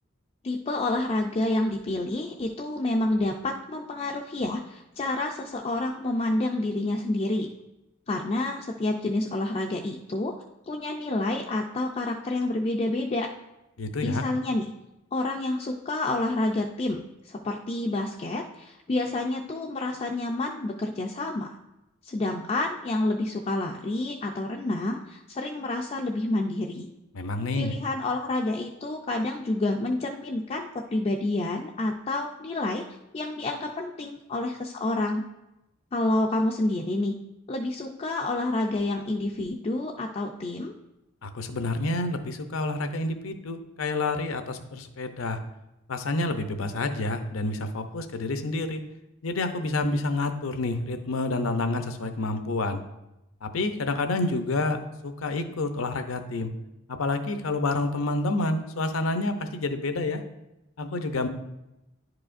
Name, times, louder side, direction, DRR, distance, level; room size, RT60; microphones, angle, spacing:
voice 1, 0.4-7.5 8.1-10.4 10.7-13.3 14.0-14.7 15.1-21.6 22.0-26.9 27.6-32.8 33.1-35.2 35.9-37.1 37.5-40.7, left 2 dB, 30° left, 0 dB, 0.3 m, -28 dB
voice 2, 13.8-14.2 27.1-27.7 41.2-45.4 45.9-48.8 49.2-52.8 53.4-54.8 55.0-56.5 56.9-60.2 60.8-61.3, left 2 dB, 85° left, 8 dB, 0.6 m, -28 dB
10.5 x 4.8 x 2.5 m, 0.93 s
head